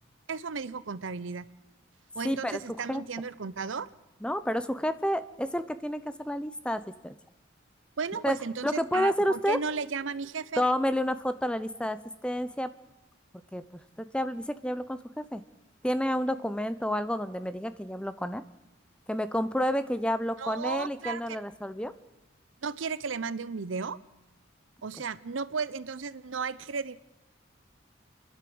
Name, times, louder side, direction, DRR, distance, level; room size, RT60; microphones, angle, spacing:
voice 1, 0.3-1.5 2.1-3.9 8.0-10.6 20.4-21.4 22.6-24.0 24.8-27.0, right 5 dB, 80° right, 17 dB, 0.7 m, -34 dB
voice 2, 2.2-2.6 2.9-3.0 4.2-7.2 8.2-8.4 8.6-9.6 10.6-12.7 13.3-13.6 14.0-15.4 15.8-18.4 19.1-21.9, equal, 5° left, 12 dB, 0.7 m, -30 dB
29.5 x 11.0 x 7.8 m, 0.96 s
head